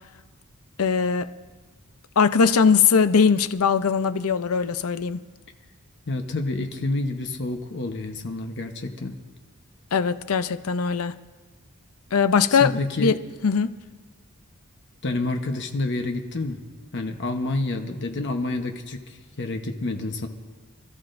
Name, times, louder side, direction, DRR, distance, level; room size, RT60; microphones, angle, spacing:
voice 1, 0.8-1.3 2.2-5.2 9.9-11.1 12.1-13.1 13.4-13.7, left 6 dB, 70° left, 12 dB, 0.6 m, -20 dB
voice 2, 6.1-9.2 12.5-13.1 15.0-16.6 16.9-20.3, left 2 dB, 55° left, 5 dB, 1.0 m, -28 dB
27.5 x 14.0 x 2.6 m, 1.3 s
head